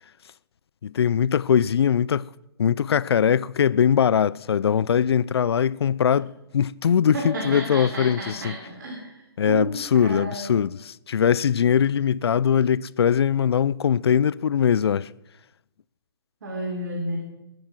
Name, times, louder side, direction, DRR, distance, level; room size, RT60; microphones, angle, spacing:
voice 1, 0.8-2.3 2.6-8.5 9.4-15.1, left 8 dB, 85° left, 0.4 m, -21 dB
voice 2, 7.1-10.5 16.4-17.2, right 2 dB, 50° right, 3.4 m, -32 dB
20.0 x 10.5 x 6.0 m
hypercardioid pair, 175°, 13 cm